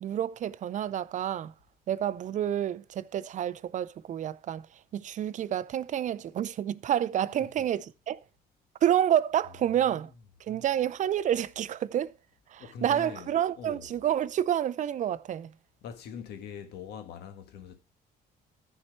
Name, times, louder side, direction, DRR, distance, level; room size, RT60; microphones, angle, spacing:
voice 1, 0.0-1.5 1.9-4.7 4.9-8.2 8.8-10.1 10.5-12.1 12.5-15.5, right 10 dB, 45° right, 0.6 m, -29 dB
voice 2, 12.6-13.3 13.5-13.9 15.8-17.8, left 7 dB, 75° left, 1.5 m, -43 dB
13.5 x 4.6 x 4.5 m
cardioid pair, 110°, 17 cm